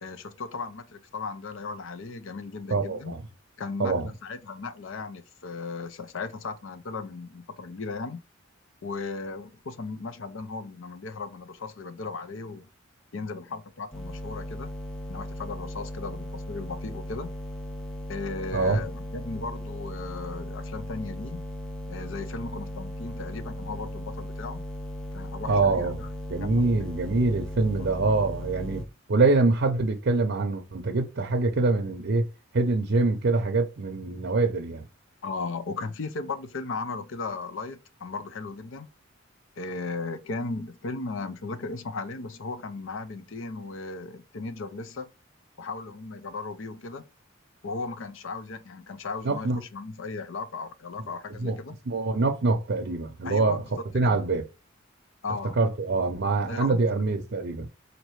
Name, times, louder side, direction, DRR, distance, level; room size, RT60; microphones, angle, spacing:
voice 1, 0.0-3.1 3.6-8.2 8.8-12.7 13.1-14.7 15.1-17.3 18.1-21.4 21.9-24.6 25.1-26.1 26.4-26.9 27.8-27.9 35.2-38.9 39.6-45.1 45.6-47.0 47.6-51.7 53.2-53.6 53.9-54.2 55.2-55.6 56.5-56.9, left 3 dB, 70° left, 0.6 m, -36 dB
voice 2, 2.7-3.2 3.8-4.1 18.5-18.8 25.4-26.0 26.3-28.8 29.1-32.3 32.5-34.8 49.2-49.6 51.4-51.6 51.9-53.6 53.9-54.4 55.6-57.7, right 3 dB, 60° right, 0.6 m, -24 dB
sound 1, 13.9-28.9, left 1 dB, 5° left, 0.6 m, -37 dB
4.4 x 2.6 x 3.1 m
head